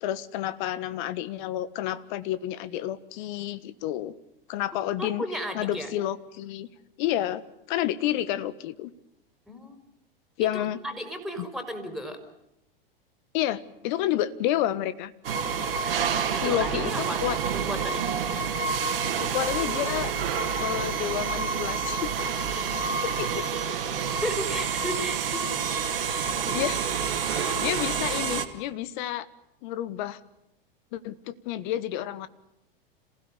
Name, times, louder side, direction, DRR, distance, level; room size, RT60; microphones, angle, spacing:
voice 1, 0.0-4.1 4.5-5.2 5.5-6.7 7.0-7.4 7.7-8.9 10.4-10.8 11.4-11.5 13.3-15.1 16.4-17.4 19.2-20.1 20.6-22.1 22.5-22.6 23.0-23.5 26.4-26.8 27.3-29.3 29.6-30.2 30.9-32.3, left 12 dB, 55° left, 16 dB, 1.5 m, -30 dB
voice 2, 5.0-5.9 9.5-9.8 10.4-12.2 16.3-17.2 17.5-18.0 24.2-25.7, equal, ahead, 6 dB, 4.7 m, -34 dB
sound 1, 15.2-28.4, right 6 dB, 75° right, 2.5 m, -28 dB
26.5 x 16.5 x 9.9 m, 0.87 s
hypercardioid pair, 95°, 29 cm